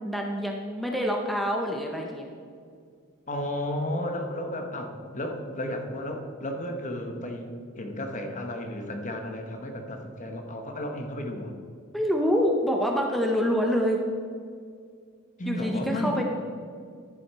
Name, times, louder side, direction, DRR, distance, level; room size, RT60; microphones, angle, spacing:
voice 1, 0.0-2.3 11.9-14.0 15.5-16.2, equal, ahead, 0 dB, 0.7 m, -26 dB
voice 2, 3.3-11.5 15.4-16.2, left 1 dB, 35° left, 4 dB, 1.0 m, -33 dB
11.5 x 7.1 x 4.7 m, 2.1 s
head